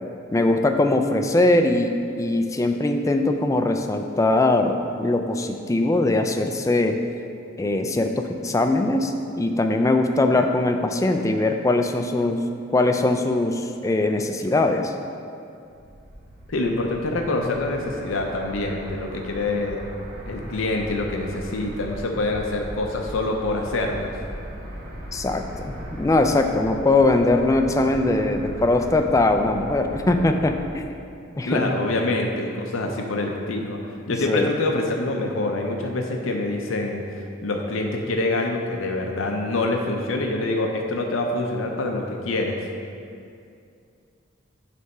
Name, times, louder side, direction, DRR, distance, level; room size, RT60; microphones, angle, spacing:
voice 1, 0.3-7.0 7.6-12.4 12.7-14.9 25.1-30.8 31.4-31.7 34.1-34.5, left 2 dB, 15° left, 5 dB, 0.3 m, -21 dB
sound 1, 15.6-30.6, equal, 50° right, 1.2 m, -38 dB
voice 2, 16.5-19.8 20.3-24.1 31.4-33.8 34.1-37.0 37.4-42.6, left 2 dB, 85° left, 1 dB, 0.6 m, -25 dB
8.0 x 3.4 x 5.4 m, 2.5 s
head